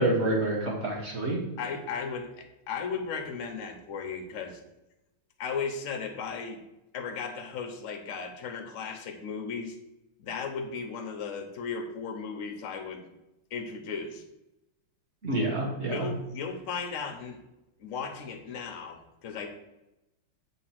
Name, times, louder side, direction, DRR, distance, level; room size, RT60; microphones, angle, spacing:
voice 1, 0.0-1.4 15.2-16.1, right 2 dB, 35° right, -1 dB, 1.4 m, -27 dB
voice 2, 1.6-4.6 5.4-6.6 6.9-9.7 10.2-13.1 13.5-14.2 15.9-17.4 17.8-19.5, left 5 dB, 60° left, 3 dB, 0.8 m, -36 dB
6.9 x 3.1 x 5.8 m, 0.93 s
omnidirectional pair, 2.3 m